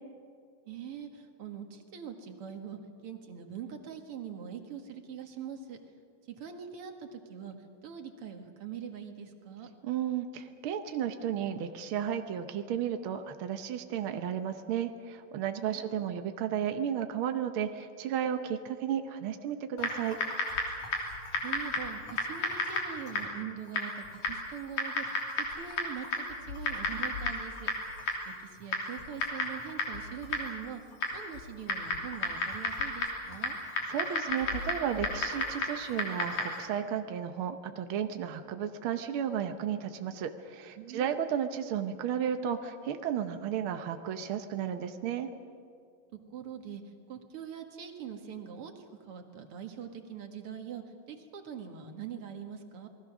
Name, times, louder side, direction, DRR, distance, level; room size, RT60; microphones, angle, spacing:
voice 1, 0.7-5.8 6.3-7.6 7.8-9.7 15.6-16.0 21.3-25.1 25.4-27.7 28.3-30.8 31.1-33.6 40.8-41.1 46.3-46.8 47.1-52.9, right 8 dB, 50° right, 5 dB, 2.2 m, -43 dB
voice 2, 9.8-20.2 33.9-45.3, right 9 dB, 80° right, 7 dB, 1.1 m, -33 dB
Typing, 19.8-36.7, left 3 dB, 85° left, 4.8 m, -34 dB
28.5 x 20.0 x 6.1 m, 2.2 s
omnidirectional pair, 3.8 m